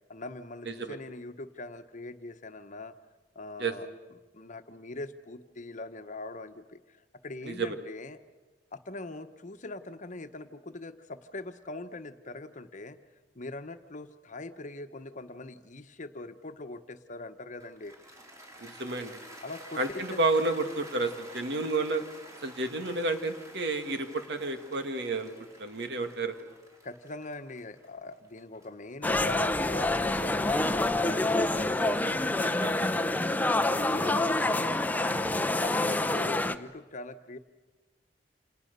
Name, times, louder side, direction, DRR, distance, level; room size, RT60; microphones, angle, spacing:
voice 1, 0.1-2.9 3.3-3.9 4.3-8.2 8.7-13.0 13.3-18.0 19.4-20.5 26.8-32.8 33.6-34.7 35.0-37.4, left 2 dB, 45° left, 9 dB, 1.2 m, -42 dB
voice 2, 0.7-1.0 3.6-3.7 7.4-7.8 18.6-19.2 19.8-22.0 22.4-25.3 25.6-26.4 32.6-32.7, right 3 dB, 65° right, 7 dB, 2.1 m, -30 dB
Cheering / Applause, 17.6-29.8, right 1 dB, 20° right, 4.2 m, -50 dB
sound 1, 29.0-36.6, left 2 dB, 10° left, 0.8 m, -27 dB
28.5 x 27.5 x 6.8 m, 1.3 s
head